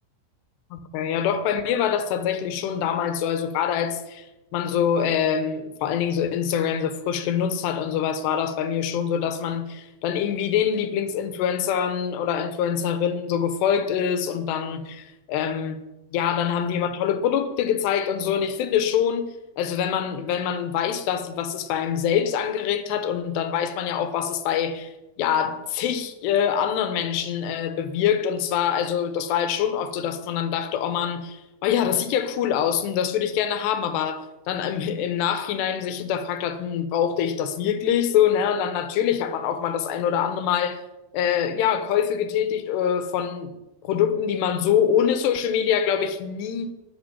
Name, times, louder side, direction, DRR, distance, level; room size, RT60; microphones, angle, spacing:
voice 1, 0.7-4.3 4.5-15.8 16.1-19.3 19.6-40.8 41.1-43.5 43.8-46.7, left 8 dB, 70° left, 3.0 m, -24 dB
13.5 x 7.1 x 9.9 m
omnidirectional pair, 5.5 m